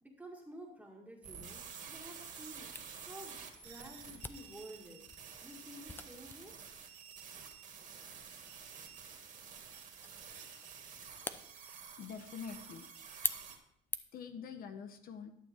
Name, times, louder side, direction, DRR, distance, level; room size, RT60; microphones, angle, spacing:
voice 1, 0.0-5.1 5.4-6.6, equal, 10° right, -1 dB, 1.7 m, -52 dB
sound 1, 1.2-13.6, right 6 dB, 50° right, 2.1 m, -50 dB
Camera, 2.7-14.3, left 2 dB, 10° left, 0.5 m, -47 dB
voice 2, 12.0-12.9 14.1-15.3, left 6 dB, 60° left, 8 dB, 0.9 m, -45 dB
11.5 x 6.7 x 4.4 m, 0.77 s
cardioid pair, 110°, 17 cm